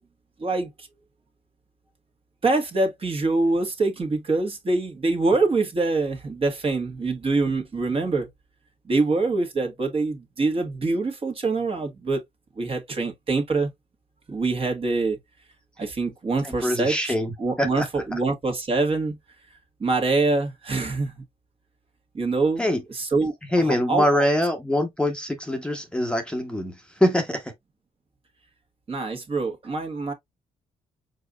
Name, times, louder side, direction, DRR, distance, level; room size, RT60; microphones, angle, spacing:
voice 1, 0.4-0.9 2.4-8.3 8.8-12.2 12.5-13.7 14.3-15.2 15.8-19.2 19.8-21.2 22.1-22.7 22.9-24.3 28.9-30.1, right 3 dB, 40° right, 1.6 m, -25 dB
voice 2, 16.4-17.9 22.6-22.8 23.5-27.5, left 1 dB, 5° left, 1.0 m, -24 dB
4.6 x 4.0 x 2.4 m
cardioid pair, 80°, 15 cm